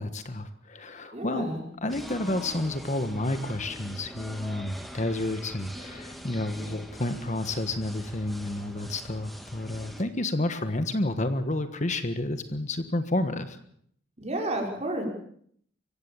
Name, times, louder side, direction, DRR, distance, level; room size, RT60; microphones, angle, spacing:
voice 1, 0.0-1.5 1.8-13.6, left 2 dB, 40° left, 9 dB, 1.4 m, -30 dB
voice 2, 1.1-1.6 14.2-15.0, right 1 dB, 35° right, 1 dB, 5.6 m, -31 dB
sound 1, 1.9-10.0, equal, ahead, 2.1 m, -43 dB
25.0 x 15.5 x 7.3 m, 0.64 s
head